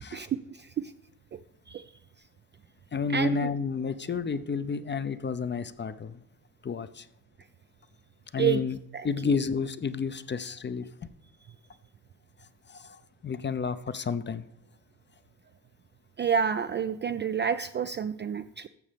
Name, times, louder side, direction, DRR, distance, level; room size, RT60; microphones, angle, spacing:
voice 1, 0.1-0.9 1.3-1.4 1.7-1.8 3.1-3.4 8.4-8.6 8.9-9.1 16.2-18.7, right 7 dB, 25° right, 10 dB, 0.3 m, -29 dB
voice 2, 2.9-6.2 6.6-7.1 8.3-8.8 9.0-10.9 12.7-14.5, left 5 dB, 25° left, 13 dB, 0.6 m, -31 dB
13.0 x 7.2 x 3.4 m, 0.79 s
hypercardioid pair, 45°, 46 cm